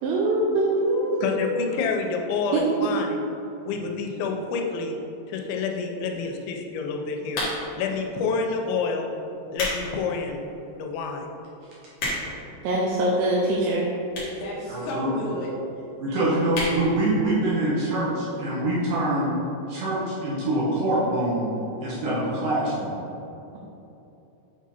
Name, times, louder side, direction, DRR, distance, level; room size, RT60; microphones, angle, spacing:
voice 1, 0.0-1.3 2.5-2.9 12.6-13.9, right 2 dB, 85° right, -3 dB, 3.0 m, -23 dB
voice 2, 0.6-1.8 14.3-15.5 15.8-15.9, left 1 dB, 70° left, -4 dB, 2.2 m, -32 dB
voice 3, 1.2-3.1 3.7-4.9 5.3-7.4 7.8-9.1 9.5-10.4 10.8-11.3, left 5 dB, 90° left, 2 dB, 3.0 m, -28 dB
sound 1, 7.3-7.9 8.6-8.8 9.3-9.8 10.3-10.4 11.0-11.1 11.3-11.4 11.6-12.5 13.2-13.3 14.1-14.4 14.7-14.8 15.0-15.1 15.4-15.5 15.8-16.0 16.5-16.8 17.2-17.3 17.5-17.6, left 1 dB, 55° left, 1.9 m, -30 dB
voice 4, 14.7-15.1 16.0-19.3 19.7-21.5 21.8-23.0, right 1 dB, 70° right, -7 dB, 2.0 m, -25 dB
7.9 x 3.7 x 4.2 m, 2.9 s
omnidirectional pair, 5.1 m